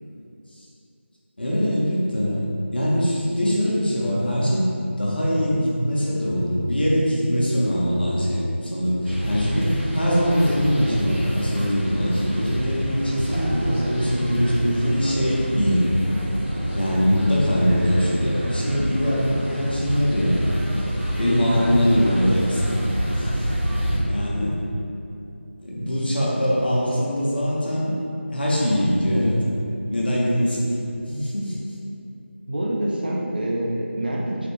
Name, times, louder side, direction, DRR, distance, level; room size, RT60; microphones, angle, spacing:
voice 1, 1.4-2.5 2.7-4.6 5.0-9.7 9.9-15.8 16.7-20.4 21.2-22.7 23.1-23.5 24.0-24.5 25.6-27.9 28.3-29.4 29.9-31.6, equal, 50° left, -6 dB, 0.7 m, -22 dB
sound 1, 9.1-24.0, equal, 80° right, 1.0 m, -27 dB
voice 2, 21.5-21.9 24.4-24.6 32.5-34.4, right 1 dB, 50° right, -3 dB, 0.5 m, -26 dB
3.2 x 2.1 x 3.0 m, 2.6 s
figure-of-eight pair, 170°, 7 cm